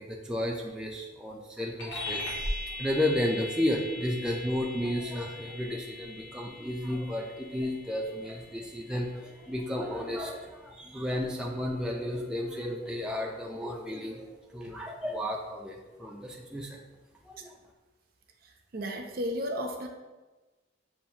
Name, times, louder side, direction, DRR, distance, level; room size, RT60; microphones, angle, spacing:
voice 1, 0.0-16.8 17.2-17.5, left 1 dB, 5° right, -2 dB, 0.4 m, -33 dB
sound 1, 1.8-11.6, left 1 dB, 65° left, 1.2 m, -41 dB
voice 2, 18.4-19.9, equal, 50° right, 3 dB, 0.5 m, -34 dB
7.0 x 2.5 x 2.7 m, 1.2 s
head